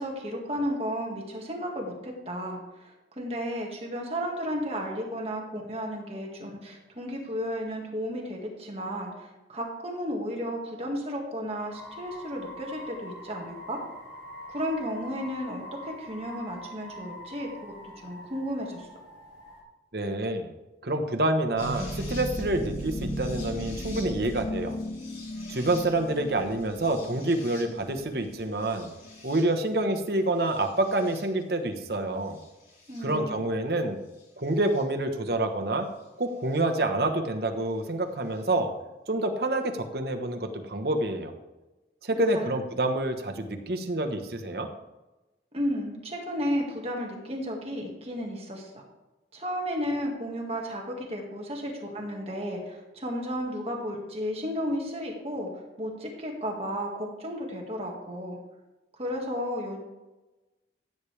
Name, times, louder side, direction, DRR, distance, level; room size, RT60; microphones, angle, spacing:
voice 1, 0.0-13.8 14.5-17.7 18.0-18.9 32.9-33.5 42.3-42.6 45.5-48.8 49.3-55.5 55.8-58.4 59.0-59.8, equal, 35° right, 0 dB, 1.9 m, -33 dB
sound 1, 11.7-19.6, equal, 80° left, 3.8 m, -44 dB
voice 2, 19.9-20.5 20.8-24.8 25.5-28.9 29.2-32.4 33.0-34.0 34.4-35.9 36.2-38.7 39.1-41.3 42.0-44.7, right 2 dB, 60° right, 5 dB, 1.2 m, -27 dB
sound 2, 21.6-29.7 30.4-31.2 32.4-33.0 34.7-34.8 36.6-36.7, equal, 55° left, 4.2 m, -37 dB
15.0 x 8.6 x 3.4 m, 1.1 s
head